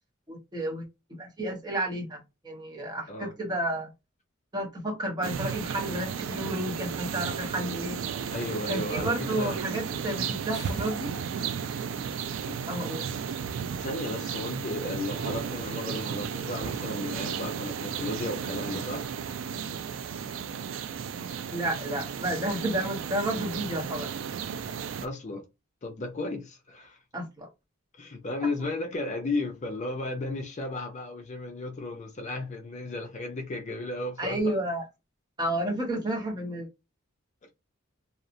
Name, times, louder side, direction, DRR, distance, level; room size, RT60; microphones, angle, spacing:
voice 1, 0.3-0.8 1.2-3.9 4.5-8.0 8.7-11.1 12.7-13.0 21.5-24.1 27.1-27.5 28.6-28.7 34.2-34.9 35.4-36.7, right 1 dB, 20° right, 0.8 m, -31 dB
sound 1, 5.2-25.1, right 7 dB, 65° right, 0.3 m, -34 dB
voice 2, 8.3-9.7 12.5-12.7 13.8-19.1 25.0-25.4 25.8-27.0 28.0-34.4, left 2 dB, 35° left, 0.4 m, -34 dB
sound 2, 10.5-11.1, left 4 dB, 50° left, 0.8 m, -47 dB
2.8 x 2.0 x 2.4 m
head